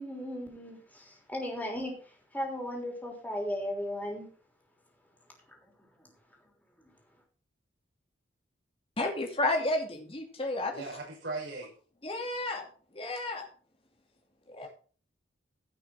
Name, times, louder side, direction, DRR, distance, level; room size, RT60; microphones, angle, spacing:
voice 1, 0.0-4.3, equal, 10° left, 0 dB, 3.4 m, -36 dB
voice 2, 9.0-10.8 12.0-12.7 12.9-13.5 14.5-14.7, left 2 dB, 30° left, 2 dB, 2.6 m, -31 dB
voice 3, 10.7-11.7 14.6-14.7, right 3 dB, 75° right, -5 dB, 6.4 m, -38 dB
16.0 x 6.3 x 4.4 m, 0.40 s
head